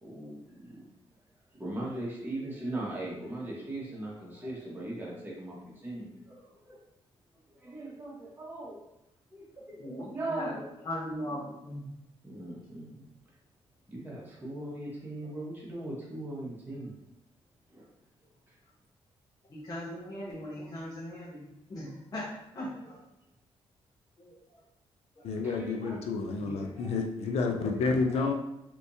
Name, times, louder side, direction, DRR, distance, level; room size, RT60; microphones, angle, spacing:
voice 1, 0.0-0.7 1.6-6.8 7.6-8.8 9.3-9.8 10.1-10.6 12.2-13.1 13.9-16.9 17.7-17.8 25.4-26.0 26.5-27.0 27.2-27.3 28.1-28.3, right 1 dB, 20° right, -5 dB, 1.4 m, -39 dB
voice 2, 9.8-10.5 10.8-11.9 19.5-21.4 21.7-22.3 22.5-23.0 24.2-24.3 25.2-25.4, left 1 dB, 35° left, -7 dB, 1.1 m, -39 dB
voice 3, 25.2-28.3, left 4 dB, 75° left, 4 dB, 0.5 m, -30 dB
3.2 x 3.0 x 2.7 m, 0.87 s
cardioid pair, 85°, 11 cm